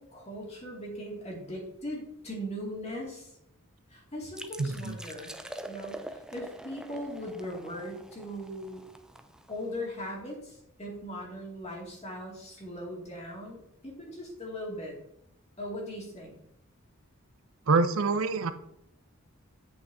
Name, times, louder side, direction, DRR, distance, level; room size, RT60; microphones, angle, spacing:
voice 1, 0.0-3.3 3.9-5.3 5.7-8.8 9.5-15.0 15.6-16.4, equal, 30° left, -3 dB, 2.2 m, -39 dB
sound 1, 4.3-9.9, right 1 dB, 5° right, 0.3 m, -45 dB
voice 2, 4.6-5.0 17.7-18.5, right 4 dB, 80° right, 10 dB, 0.6 m, -26 dB
8.4 x 6.0 x 2.7 m, 0.77 s
head